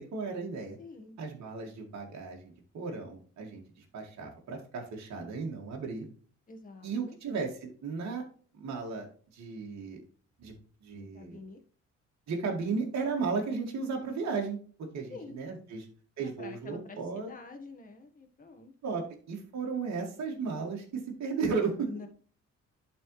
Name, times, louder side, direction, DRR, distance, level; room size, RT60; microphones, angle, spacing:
voice 1, 0.0-0.8 1.2-6.1 6.8-8.2 8.5-9.1 9.3-10.0 10.4-11.4 12.3-14.6 14.9-15.9 16.2-17.3 18.8-21.9, right 4 dB, 65° right, 0 dB, 2.2 m, -35 dB
voice 2, 0.8-1.1 6.5-7.2 10.9-11.6 15.1-15.4 16.2-18.7 21.9-22.1, left 4 dB, 25° left, 4 dB, 1.4 m, -47 dB
11.0 x 4.4 x 3.2 m, 0.42 s
cardioid pair, 90°, 30 cm